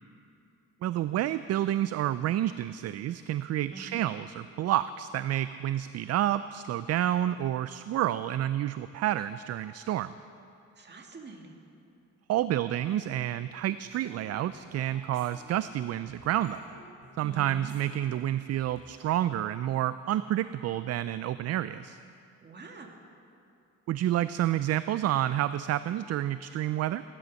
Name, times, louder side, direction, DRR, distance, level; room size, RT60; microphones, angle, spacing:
voice 1, 0.8-10.1 12.3-16.6 17.2-22.0 23.9-27.0, right 12 dB, 55° right, 14 dB, 0.4 m, -29 dB
voice 2, 3.7-4.0 10.8-11.7 17.2-17.7 22.4-23.0, right 3 dB, 35° right, 2 dB, 2.0 m, -45 dB
sound 1, 13.9-15.8 16.1-18.9, right 1 dB, 85° right, 4.7 m, -54 dB
16.5 x 11.0 x 6.4 m, 2.6 s
cardioid pair, 90°, 30 cm